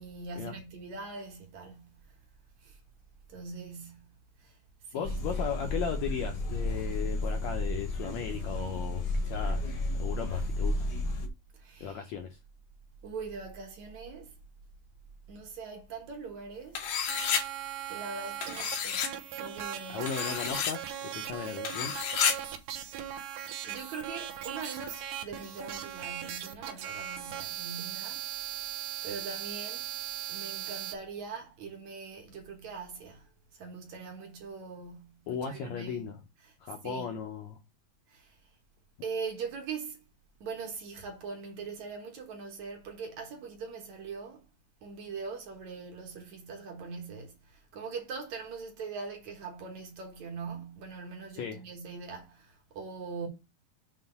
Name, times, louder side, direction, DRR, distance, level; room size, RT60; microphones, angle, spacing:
voice 1, 0.0-1.9 2.6-2.8 3.3-4.1 4.4-4.5 4.9-5.2 11.5-12.1 13.0-14.3 15.3-16.8 17.9-19.1 19.4-20.1 23.6-28.4 29.0-29.9 30.3-36.0 36.4-36.5 36.8-37.2 38.1-38.4 39.0-40.0 40.4-44.5 44.8-53.3, right 5 dB, 60° right, 2.3 m, -42 dB
voice 2, 4.9-9.7 10.0-10.8 11.8-12.4 19.9-21.9 35.3-36.2 36.6-37.6 51.4-51.6, left 7 dB, 75° left, 1.7 m, -36 dB
sound 1, 5.0-11.3, left 1 dB, 50° left, 1.2 m, -32 dB
sound 2, 16.7-17.4 18.4-19.1 20.1-20.7 21.6-22.3, left 8 dB, 90° left, 3.3 m, -30 dB
sound 3, 17.1-30.9, right 10 dB, 75° right, 1.5 m, -39 dB
7.6 x 3.3 x 5.7 m
omnidirectional pair, 4.1 m